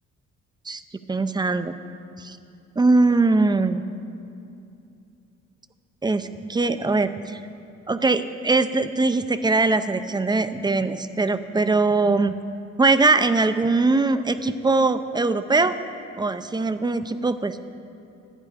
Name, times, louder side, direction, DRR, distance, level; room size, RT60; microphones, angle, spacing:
voice 1, 1.1-1.7 2.2-2.4 2.8-3.8 6.0-7.4 7.9-12.3 12.8-15.8 16.2-17.6, right 3 dB, 15° right, 11 dB, 0.4 m, -21 dB
12.0 x 10.0 x 5.0 m, 2.6 s
cardioid pair, 90°, 30 cm